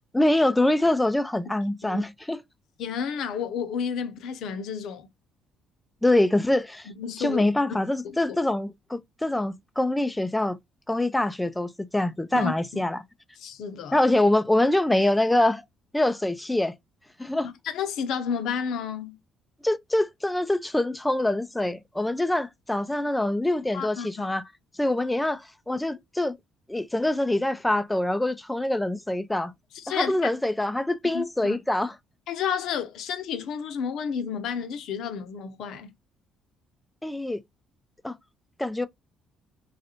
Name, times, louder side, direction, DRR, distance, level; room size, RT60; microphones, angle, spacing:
voice 1, 0.1-2.4 6.0-6.9 7.2-10.6 10.9-13.0 13.9-15.6 15.9-16.7 17.2-17.5 19.6-24.4 24.8-26.3 26.7-29.5 29.9-32.0 37.0-37.4 38.0-38.1 38.6-38.9, left 1 dB, 10° left, 0.5 m, -24 dB
voice 2, 2.8-5.1 7.0-7.4 12.3-12.8 13.4-14.0 17.7-19.2 23.7-24.3 29.7-30.3 31.1-31.6 32.3-35.9, left 7 dB, 70° left, 0.7 m, -31 dB
3.2 x 2.5 x 2.8 m
supercardioid pair, 60°, 0 cm